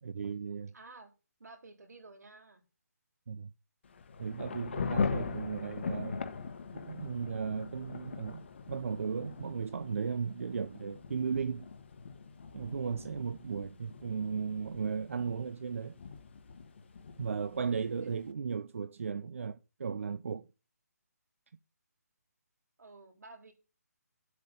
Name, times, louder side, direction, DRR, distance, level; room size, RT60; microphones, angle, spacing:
voice 1, 0.0-0.7 3.3-3.5 4.2-6.3 6.7-11.7 12.5-16.0 17.2-20.5, right 6 dB, 50° right, 0.6 m, -36 dB
voice 2, 0.7-1.1 1.4-2.6 18.0-18.1 22.8-23.5, right 3 dB, 75° right, 3.8 m, -52 dB
Thunder / Rain, 3.8-18.3, left 5 dB, 45° left, 1.2 m, -41 dB
11.5 x 8.1 x 5.3 m
hypercardioid pair, 175°, 9 cm